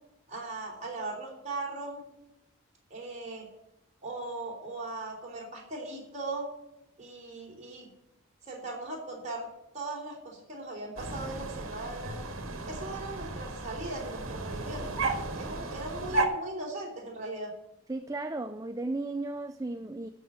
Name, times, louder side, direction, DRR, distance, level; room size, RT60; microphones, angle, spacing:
voice 1, 0.3-2.0 2.9-3.5 4.0-6.5 7.0-7.9 8.4-9.5 9.7-12.2 12.7-14.9 15.4-17.5, right 2 dB, 35° right, -1 dB, 3.6 m, -38 dB
sound 1, 11.0-16.3, right 2 dB, 70° right, 1.8 m, -34 dB
voice 2, 17.9-20.1, right 2 dB, 15° right, 8 dB, 0.4 m, -35 dB
13.0 x 5.4 x 8.8 m, 0.88 s
head